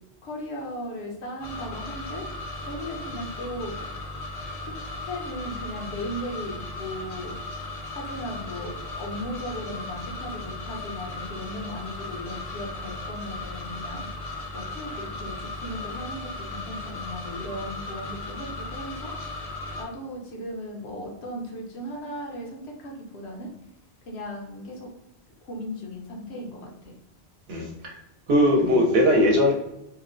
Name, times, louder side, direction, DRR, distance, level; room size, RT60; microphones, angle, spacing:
voice 1, 0.2-2.3 2.6-3.8 4.6-4.8 5.0-7.3 7.9-14.1 14.5-23.5 24.0-24.9 25.4-27.0, left 1 dB, 80° left, 0 dB, 1.0 m, -37 dB
sound 1, 1.4-19.8, left 2 dB, 50° left, 0.5 m, -36 dB
voice 2, 27.5-27.9 28.3-29.5, left 1 dB, 70° right, 0 dB, 0.8 m, -20 dB
2.9 x 2.0 x 2.4 m, 0.87 s
omnidirectional pair, 1.1 m